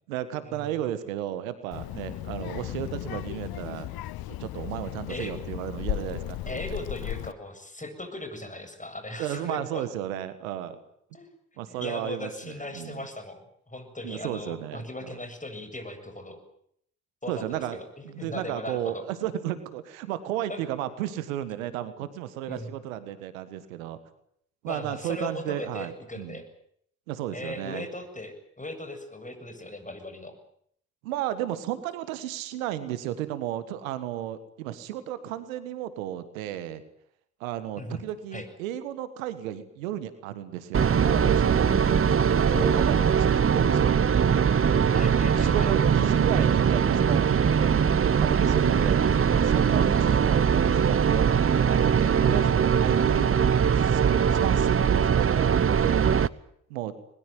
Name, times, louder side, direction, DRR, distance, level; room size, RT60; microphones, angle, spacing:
voice 1, 0.0-3.9 4.3-6.6 9.2-10.8 11.6-13.0 14.0-15.1 17.3-24.0 24.6-26.4 27.1-27.9 31.0-36.8 37.4-44.0 45.4-49.0 49.3-53.3 53.7-56.1 56.7-56.9, right 12 dB, 90° right, 13 dB, 1.6 m, -34 dB
Child speech kid speaking, 1.7-7.3, left 15 dB, 65° left, 0.9 m, -35 dB
voice 2, 6.5-9.9 11.1-11.3 11.7-16.4 17.2-19.0 20.5-20.6 22.5-22.8 24.7-26.5 27.3-30.3 37.8-38.0 38.3-38.5 42.5-43.3 44.9-45.7, left 1 dB, 20° left, 8 dB, 7.8 m, -38 dB
sound 1, 40.7-56.3, right 7 dB, 35° right, 0.9 m, -21 dB
21.5 x 21.5 x 9.3 m, 0.69 s
hypercardioid pair, 40°, 39 cm